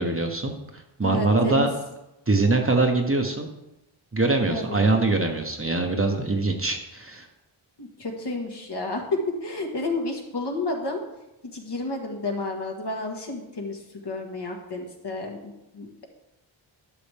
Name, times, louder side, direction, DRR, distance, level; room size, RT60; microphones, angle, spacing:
voice 1, 0.0-1.7 2.3-3.5 4.1-7.3, right 3 dB, 25° right, 3 dB, 1.2 m, -23 dB
voice 2, 1.0-1.7 4.5-4.9 7.8-11.0 11.5-16.1, left 2 dB, 55° left, 1 dB, 1.9 m, -31 dB
12.0 x 6.2 x 3.6 m, 0.92 s
cardioid pair, 60°, 50 cm